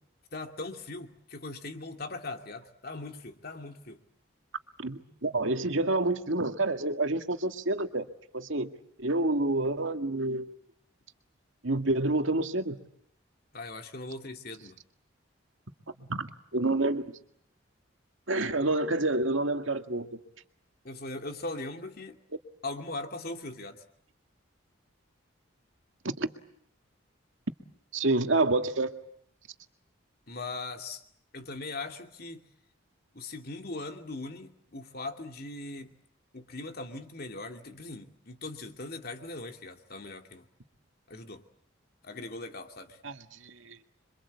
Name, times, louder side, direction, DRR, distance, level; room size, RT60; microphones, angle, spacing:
voice 1, 0.3-4.0 13.5-14.8 20.8-22.2 22.6-23.8 30.3-31.0 31.3-32.5 33.1-35.9 36.3-40.5 41.1-41.4 42.0-43.0, left 2 dB, 50° left, 5 dB, 2.6 m, -40 dB
voice 2, 4.8-8.1 8.3-8.7 9.0-10.5 11.6-12.8 16.1-17.1 18.3-20.2 26.0-26.3 27.9-28.9 43.0-43.9, right 2 dB, 75° right, 7 dB, 2.1 m, -28 dB
27.5 x 25.0 x 8.4 m, 0.68 s
head